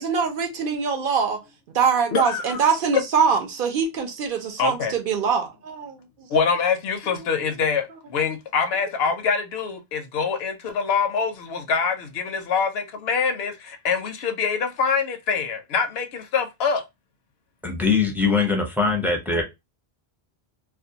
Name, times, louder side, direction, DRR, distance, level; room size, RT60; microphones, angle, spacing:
voice 1, 0.0-1.4 1.7-6.0 7.2-7.3 19.3-19.4, right 6 dB, 65° right, 0.7 m, -23 dB
voice 2, 2.1-2.6 4.6-4.9 6.3-16.8, left 5 dB, 80° left, 0.8 m, -25 dB
voice 3, 17.6-19.4, left 4 dB, 5° right, 0.4 m, -22 dB
2.4 x 2.2 x 2.6 m
omnidirectional pair, 1.0 m